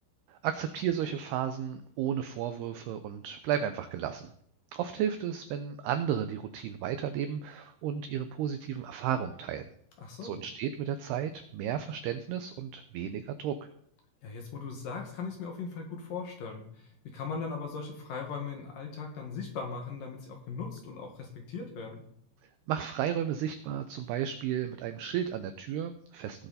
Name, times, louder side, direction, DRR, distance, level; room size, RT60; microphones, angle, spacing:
voice 1, 0.3-4.3 4.7-9.6 10.2-13.7 22.7-26.5, right 9 dB, 85° right, 9 dB, 2.3 m, -33 dB
voice 2, 10.0-10.4 14.2-22.0, left 5 dB, 60° left, 2 dB, 2.8 m, -39 dB
18.0 x 8.2 x 4.2 m, 0.68 s
omnidirectional pair, 5.5 m